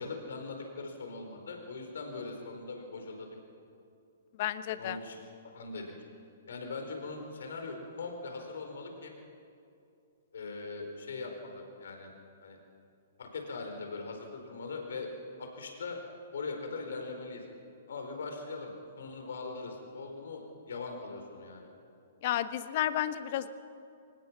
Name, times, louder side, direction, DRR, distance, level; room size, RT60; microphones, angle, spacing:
voice 1, 0.0-3.4 4.8-5.2 5.5-5.9 6.5-9.1 10.3-12.1 12.4-12.6 13.2-15.1 15.4-16.0 16.3-17.4 17.9-21.7, left 3 dB, 65° left, 4 dB, 4.6 m, -41 dB
voice 2, 4.4-5.0 22.2-23.5, left 12 dB, 45° left, 13 dB, 1.1 m, -31 dB
25.0 x 20.0 x 6.0 m, 2.5 s
figure-of-eight pair, 115°, 0 cm